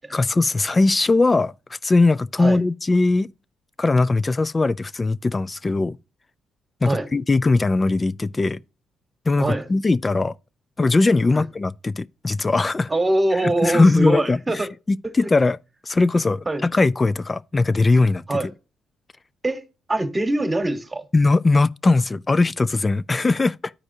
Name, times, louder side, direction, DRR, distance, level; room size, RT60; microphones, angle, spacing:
voice 1, 0.1-3.3 3.8-6.0 6.8-8.6 9.3-10.4 10.8-12.9 13.4-15.6 15.8-18.2 21.1-23.7, left 3 dB, 25° left, 0.3 m, -20 dB
voice 2, 9.4-9.7 11.3-11.4 12.9-14.7 16.5-16.6 18.3-18.5 19.4-19.6 19.9-21.1, right 2 dB, 20° right, 1.2 m, -23 dB
13.0 x 4.8 x 2.6 m
cardioid pair, 90°, 0 cm